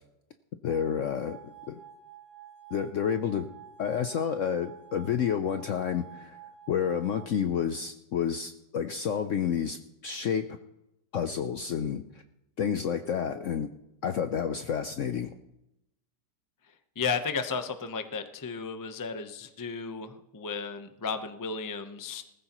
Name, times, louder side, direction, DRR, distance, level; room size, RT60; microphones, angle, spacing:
voice 1, 0.6-1.4 1.7-1.8 2.7-3.5 3.8-6.4 6.7-9.8 10.0-10.4 11.1-12.0 12.6-13.7 14.0-15.3, left 8 dB, 65° left, 8 dB, 0.7 m, -29 dB
sound 1, 0.6-7.3, right 10 dB, 80° right, 3.5 m, -50 dB
voice 2, 17.0-22.2, left 5 dB, 30° left, 7 dB, 0.3 m, -34 dB
19.5 x 14.5 x 3.0 m, 0.89 s
omnidirectional pair, 1.9 m